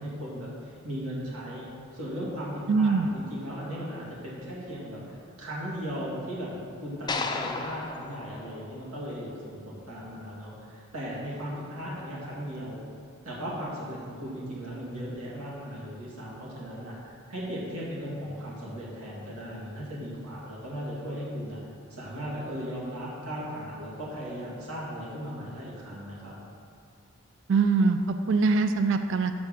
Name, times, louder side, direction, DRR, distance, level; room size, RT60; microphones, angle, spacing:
voice 1, 0.0-1.7 1.9-12.8 13.2-21.6 21.9-26.4, equal, 80° right, -5 dB, 2.2 m, -37 dB
voice 2, 2.7-3.1 27.5-29.3, right 4 dB, 55° right, 8 dB, 0.4 m, -23 dB
sound 1, 7.1-9.4, left 4 dB, 20° left, 0.3 m, -35 dB
6.6 x 5.2 x 6.2 m, 2.3 s
head